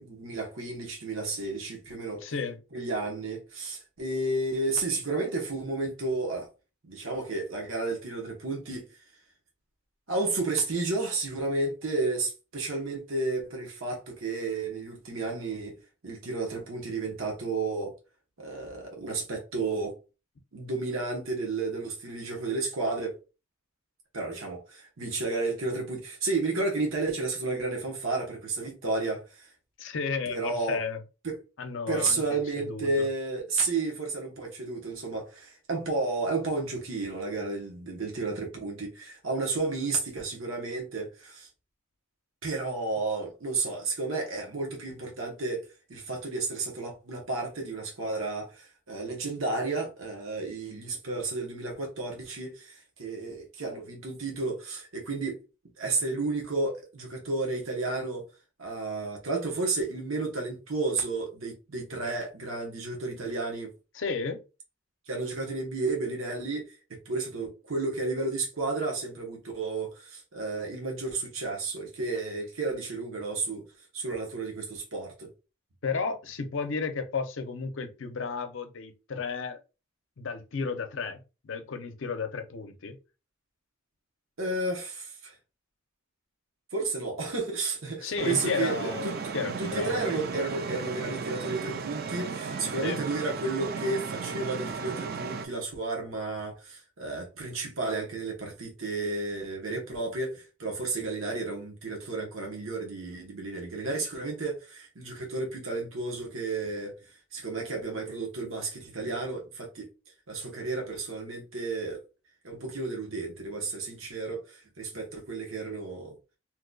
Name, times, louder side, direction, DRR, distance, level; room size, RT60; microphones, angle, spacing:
voice 1, 0.0-2.2 2.7-6.5 6.8-8.9 10.1-17.9 18.4-20.0 20.5-23.2 24.1-29.5 30.3-30.8 31.2-31.4 31.9-41.5 42.4-45.6 45.9-55.4 55.8-58.2 58.6-63.7 65.1-73.7 73.9-75.3 84.4-85.3 86.7-89.2 89.6-109.9 110.3-112.0 112.4-116.2, right 3 dB, 80° right, 1.0 m, -32 dB
voice 2, 2.2-2.6 29.8-31.0 31.6-33.1 63.9-64.4 75.8-79.6 80.2-83.0 88.0-90.0 92.8-93.0, left 5 dB, 65° left, 0.6 m, -33 dB
sound 1, 88.2-95.5, right 5 dB, 50° right, 0.4 m, -35 dB
2.9 x 2.2 x 3.7 m
head